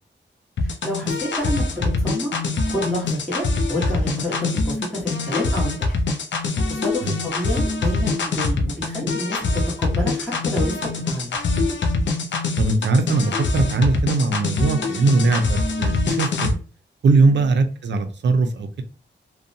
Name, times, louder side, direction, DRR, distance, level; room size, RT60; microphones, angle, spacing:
sound 1, 0.6-16.5, left 3 dB, 75° left, 0.4 m, -24 dB
voice 1, 0.6-2.3 2.7-6.0 6.7-11.4 17.2-17.5, left 1 dB, 5° left, -7 dB, 1.1 m, -29 dB
voice 2, 12.6-16.6 17.0-18.8, right 3 dB, 70° right, 7 dB, 0.5 m, -20 dB
2.6 x 2.2 x 2.6 m, 0.37 s
wide cardioid pair, 115°, 19 cm